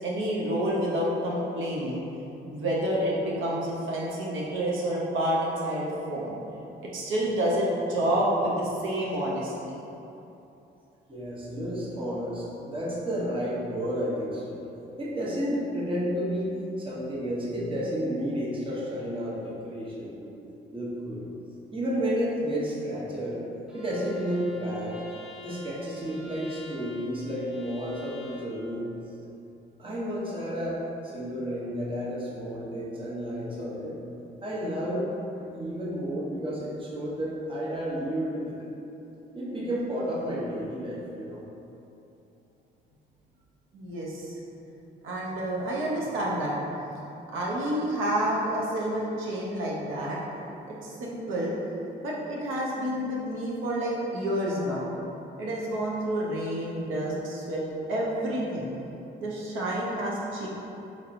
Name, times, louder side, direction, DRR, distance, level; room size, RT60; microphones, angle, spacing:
voice 1, 0.0-2.0 2.5-6.4 6.8-9.8 43.7-44.4 45.0-46.6 47.3-50.2 50.7-51.5 52.0-54.9 55.4-57.6 57.9-58.7 59.2-60.5, right 1 dB, 80° right, -5 dB, 0.7 m, -29 dB
voice 2, 11.1-14.6 15.0-20.4 20.7-21.3 21.7-23.4 23.7-25.0 25.4-28.8 29.8-30.8 31.0-34.0 34.4-35.1 35.4-38.6 39.3-41.4, equal, 25° right, -6 dB, 0.9 m, -31 dB
Bowed string instrument, 23.7-28.6, left 2 dB, 5° right, 0.5 m, -47 dB
4.4 x 2.8 x 2.5 m, 2.9 s
cardioid pair, 90°, 20 cm